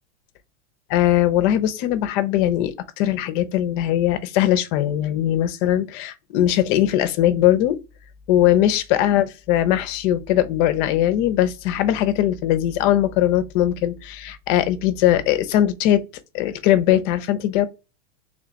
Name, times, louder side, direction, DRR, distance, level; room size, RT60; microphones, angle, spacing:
voice 1, 0.9-7.8 8.3-16.0 16.3-17.7, left 12 dB, 45° left, 0.7 m, -20 dB
3.8 x 2.4 x 3.9 m
hypercardioid pair, 130°, 35 cm